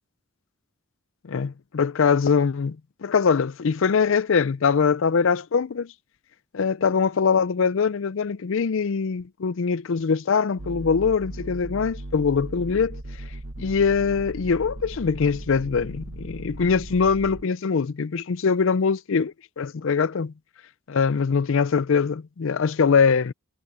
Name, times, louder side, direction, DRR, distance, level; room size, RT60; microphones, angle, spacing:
voice 1, 1.2-5.9 6.5-13.0 13.6-20.3 20.9-23.3, left 5 dB, 60° left, 0.4 m, -22 dB
sound 1, 10.6-17.4, right 1 dB, 65° right, 1.4 m, -37 dB
head